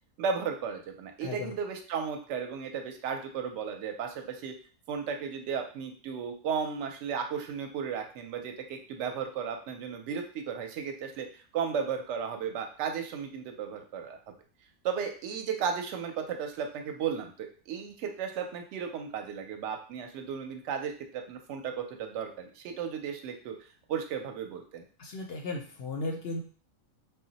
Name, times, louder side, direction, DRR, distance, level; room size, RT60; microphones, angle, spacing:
voice 1, 0.2-4.5 4.9-14.2 14.8-23.5 23.9-24.8, right 6 dB, 65° right, 5 dB, 0.8 m, -35 dB
voice 2, 1.2-1.5 25.0-26.4, left 2 dB, 65° left, 1 dB, 0.6 m, -35 dB
2.2 x 2.1 x 3.8 m, 0.41 s
omnidirectional pair, 1.4 m